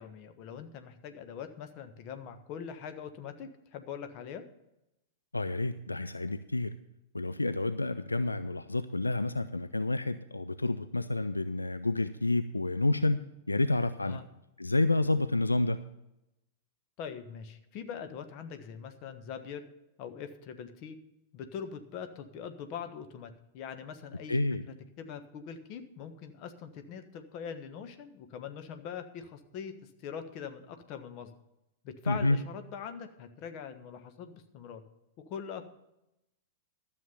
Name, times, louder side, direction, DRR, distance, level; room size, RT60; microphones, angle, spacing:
voice 1, 0.0-4.5 14.0-14.2 17.0-19.6 20.0-21.0 21.3-24.4 25.0-29.7 30.0-31.3 31.8-34.8 35.2-35.6, left 7 dB, 40° left, 8 dB, 1.3 m, -42 dB
voice 2, 5.3-6.7 7.1-13.2 13.5-14.2 14.6-15.8 24.3-24.6 32.1-32.4, left 2 dB, 85° left, 11 dB, 0.4 m, -29 dB
12.5 x 7.3 x 6.7 m, 0.88 s
figure-of-eight pair, 95°, 0 cm